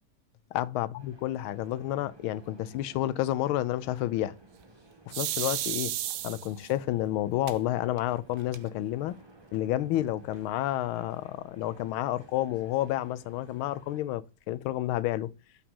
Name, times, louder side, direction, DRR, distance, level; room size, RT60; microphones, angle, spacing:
voice 1, 0.5-4.3 5.1-6.0 6.2-9.2 9.5-15.3, left 14 dB, 85° left, 1.4 m, -30 dB
sound 1, 1.0-14.0, right 2 dB, 15° right, 1.0 m, -56 dB
sound 2, 5.1-6.7 7.5-7.6 8.0-8.1 8.3-8.9, right 12 dB, 70° right, 1.0 m, -32 dB
5.7 x 4.1 x 5.3 m
omnidirectional pair, 2.2 m